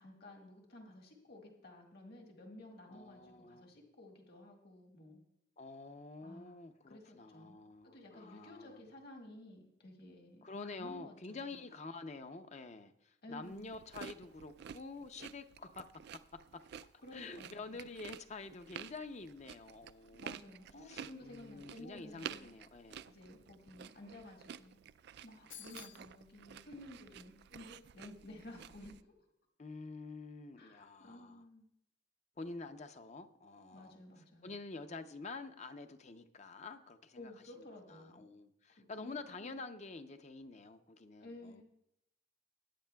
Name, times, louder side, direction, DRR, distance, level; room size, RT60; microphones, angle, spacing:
voice 1, 0.0-5.2 6.2-6.6 6.9-7.6 7.8-11.6 13.2-13.7 17.0-17.8 20.2-22.5 23.1-24.8 25.2-29.0 30.6-31.7 33.7-34.5 37.2-38.3 38.8-39.6 41.2-41.6, left 1 dB, 55° left, 0 dB, 1.8 m, -53 dB
voice 2, 2.9-3.7 5.6-8.9 10.4-15.9 16.3-16.6 17.1-20.3 20.8-23.0 29.6-31.5 32.4-34.0 34.4-41.6, left 3 dB, 40° left, 9 dB, 0.6 m, -48 dB
sound 1, 13.5-29.0, right 8 dB, 60° right, 0.3 m, -51 dB
sound 2, 25.5-26.1, left 9 dB, 90° left, 1.0 m, -51 dB
20.5 x 9.5 x 2.3 m, 0.81 s
head